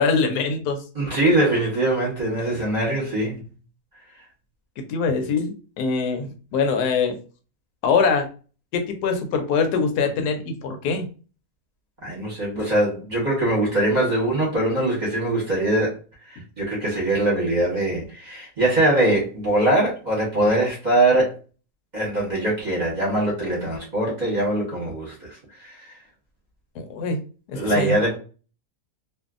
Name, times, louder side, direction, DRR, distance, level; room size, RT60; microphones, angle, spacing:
voice 1, 0.0-0.8 4.8-7.2 7.8-8.3 8.7-11.0 26.8-27.2 27.5-27.9, left 5 dB, 80° left, 1.1 m, -23 dB
voice 2, 0.9-3.4 12.0-15.9 16.3-21.3 21.9-25.8 27.5-28.2, right 1 dB, 35° right, 0.9 m, -22 dB
2.6 x 2.4 x 2.4 m
omnidirectional pair, 1.7 m